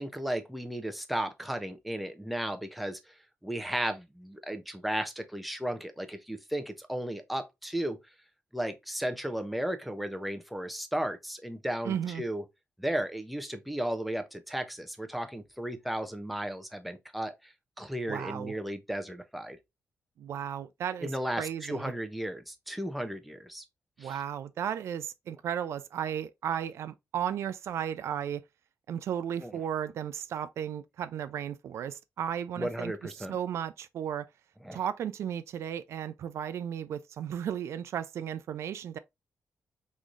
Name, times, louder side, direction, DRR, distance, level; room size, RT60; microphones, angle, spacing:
voice 1, 0.0-3.0 3.4-8.0 8.5-12.4 12.8-17.3 17.8-19.6 21.0-23.6 24.0-24.2 29.4-29.5 32.6-33.4 34.6-34.8, right 1 dB, ahead, 0.6 m, -34 dB
voice 2, 11.8-12.2 18.1-18.5 20.2-21.9 24.0-28.4 28.9-34.3 34.7-39.0, right 9 dB, 75° right, 0.3 m, -35 dB
3.8 x 3.1 x 2.4 m
cardioid pair, 105°, 5 cm